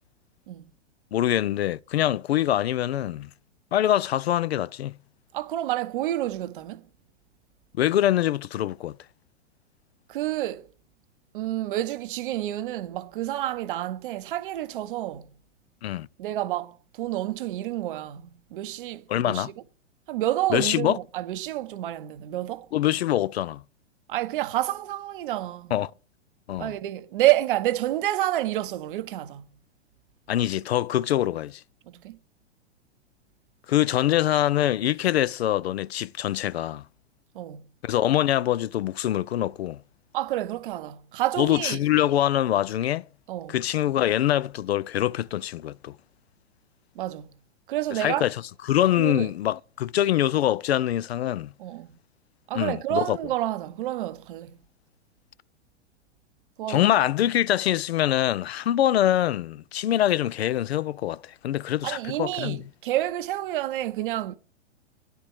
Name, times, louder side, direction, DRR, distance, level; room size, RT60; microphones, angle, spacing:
voice 1, 1.1-3.3 3.7-5.0 7.8-9.0 15.8-16.1 19.1-19.5 20.5-21.0 22.7-23.6 25.7-25.9 26.5-26.7 30.3-31.6 33.7-36.8 37.8-39.8 41.4-43.0 43.5-45.9 48.0-48.3 48.7-51.5 52.5-53.2 56.7-62.6, left 12 dB, 60° left, 0.4 m, -24 dB
voice 2, 5.3-6.9 10.1-10.7 11.3-15.3 16.2-19.5 20.1-22.7 24.1-25.7 26.6-29.5 31.9-32.2 37.3-37.7 40.1-41.8 43.3-43.6 46.9-47.3 47.7-48.3 49.0-49.3 51.6-51.9 52.5-54.6 56.6-57.0 61.8-64.4, right 14 dB, 45° right, 0.7 m, -29 dB
10.5 x 4.5 x 6.4 m
figure-of-eight pair, 105°, 36 cm